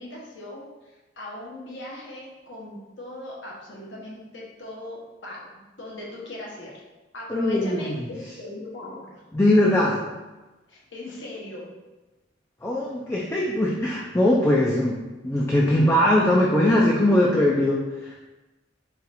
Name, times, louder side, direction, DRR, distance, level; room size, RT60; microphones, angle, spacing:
voice 1, 0.0-6.8 7.1-9.2 10.7-11.7, left 1 dB, 75° left, -4 dB, 1.1 m, -39 dB
voice 2, 7.3-8.1 9.3-10.0 12.6-14.9 15.2-18.1, left 1 dB, 15° left, -4 dB, 0.4 m, -21 dB
4.0 x 2.5 x 4.1 m, 1.1 s
head